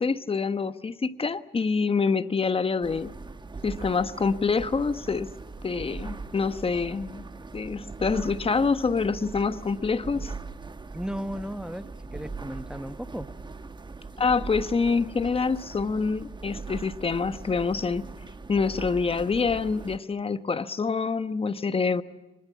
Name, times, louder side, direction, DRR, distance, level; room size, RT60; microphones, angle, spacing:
voice 1, 0.0-3.1 3.6-5.3 5.6-7.3 7.5-10.3 14.2-18.1 18.5-22.0, left 4 dB, 30° left, 12 dB, 1.2 m, -26 dB
sound 1, 2.8-20.0, right 4 dB, 20° right, 1.2 m, -40 dB
voice 2, 10.9-13.3, equal, 5° right, 12 dB, 1.1 m, -35 dB
24.5 x 20.5 x 8.5 m, 1.1 s
cardioid pair, 90°, 20 cm